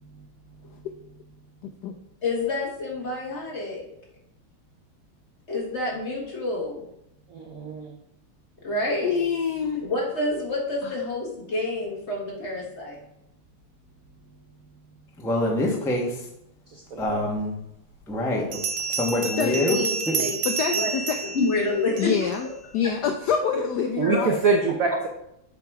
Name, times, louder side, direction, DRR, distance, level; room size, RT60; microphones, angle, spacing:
voice 1, 1.6-2.0 9.0-9.8 10.8-10.9 19.2-19.5 20.5-21.2 22.0-22.5 22.7-24.4, left 7 dB, 85° left, 5 dB, 0.8 m, -26 dB
voice 2, 2.2-3.9 5.5-6.8 8.6-9.1 9.8-13.0 19.5-20.3 20.7-20.9 21.2-22.3 23.4-23.6 24.0-24.2, left 2 dB, 35° left, -2 dB, 1.6 m, -28 dB
voice 3, 7.3-8.0 16.7-17.2 24.0-25.1, right 4 dB, 70° right, 2 dB, 0.8 m, -25 dB
voice 4, 15.2-16.3 17.0-17.5 18.1-18.6 18.9-19.8 20.1-20.2, left 1 dB, 5° left, -1 dB, 0.6 m, -25 dB
Bell, 17.3-17.4 18.5-22.4, right 5 dB, 85° right, 1.6 m, -29 dB
7.4 x 3.9 x 4.7 m, 0.78 s
omnidirectional pair, 2.3 m